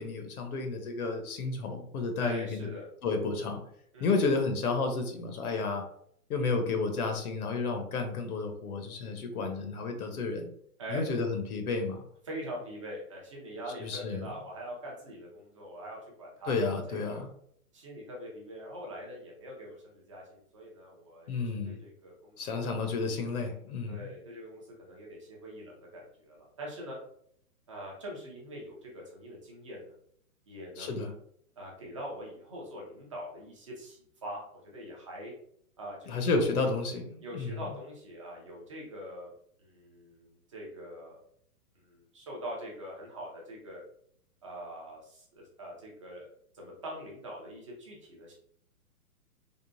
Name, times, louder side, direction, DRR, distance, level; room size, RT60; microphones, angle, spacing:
voice 1, 0.0-2.7 3.0-3.6 4.0-5.8 6.3-10.5 10.9-12.0 13.8-14.3 16.5-17.3 21.3-21.8 22.4-24.1 30.8-31.1 36.1-37.6, left 4 dB, 70° left, 4 dB, 0.9 m, -31 dB
voice 2, 2.2-2.9 3.9-4.2 10.8-11.0 12.3-16.5 16.9-17.2 17.7-22.8 23.9-27.0 27.7-29.9 30.5-31.0 31.6-35.3 35.8-36.2 37.2-39.3 39.6-41.2 41.8-43.8 44.4-46.3 46.5-48.3, equal, 20° right, -3 dB, 0.5 m, -43 dB
3.6 x 2.1 x 2.5 m, 0.66 s
hypercardioid pair, 150°, 45 cm